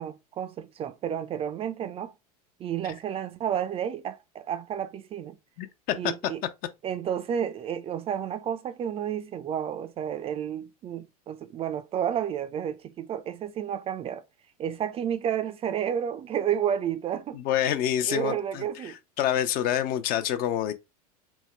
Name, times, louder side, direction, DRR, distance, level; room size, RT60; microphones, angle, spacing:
voice 1, 0.0-2.1 2.6-5.3 5.9-6.4 6.8-14.2 14.6-17.4 18.0-19.0, right 9 dB, 30° right, 0.4 m, -31 dB
voice 2, 17.3-18.9 19.2-20.7, left 10 dB, 45° left, 0.7 m, -27 dB
3.5 x 2.1 x 4.3 m
hypercardioid pair, 95°, 20 cm